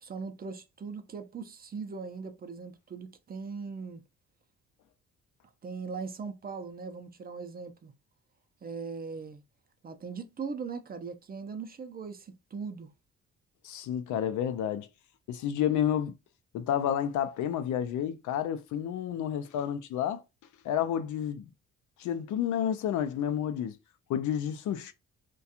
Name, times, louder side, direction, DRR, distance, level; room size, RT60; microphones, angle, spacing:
voice 1, 0.0-4.0 5.6-7.9 8.6-9.4 9.8-12.9, right 5 dB, 30° right, 0.5 m, -39 dB
voice 2, 13.6-14.9 15.3-16.1 16.5-20.2 20.6-21.5 22.0-23.8 24.1-24.9, left 9 dB, 75° left, 0.5 m, -30 dB
2.4 x 2.3 x 2.7 m
cardioid pair, 90°, 30 cm